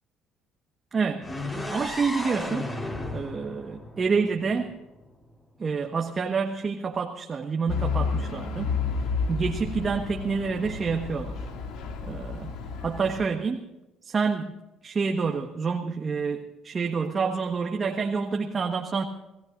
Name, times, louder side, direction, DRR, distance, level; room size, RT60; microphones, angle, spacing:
voice 1, 0.9-1.3 1.7-2.7 3.1-4.8 5.6-8.7 9.3-11.4 12.0-12.5 12.8-13.7 14.0-14.5 14.8-19.0, right 5 dB, 35° right, 3 dB, 1.5 m, -28 dB
sound 1, 1.2-5.1, left 1 dB, 25° left, 4.3 m, -35 dB
Truck / Idling, 7.7-13.2, left 5 dB, 75° left, 2.5 m, -31 dB
29.5 x 16.5 x 2.7 m, 0.99 s
supercardioid pair, 75°, 0 cm